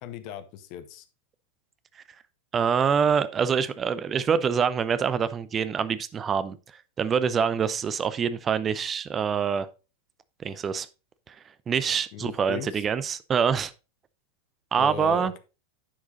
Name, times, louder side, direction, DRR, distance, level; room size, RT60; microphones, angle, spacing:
voice 1, 0.0-1.0 12.1-12.8 14.8-15.4, left 9 dB, 45° left, 1.0 m, -37 dB
voice 2, 2.5-6.6 7.0-9.7 10.4-10.9 11.3-11.4 11.7-13.7 14.7-15.3, right 7 dB, 25° right, 0.6 m, -25 dB
10.0 x 4.9 x 3.9 m
figure-of-eight pair, 90°, 0 cm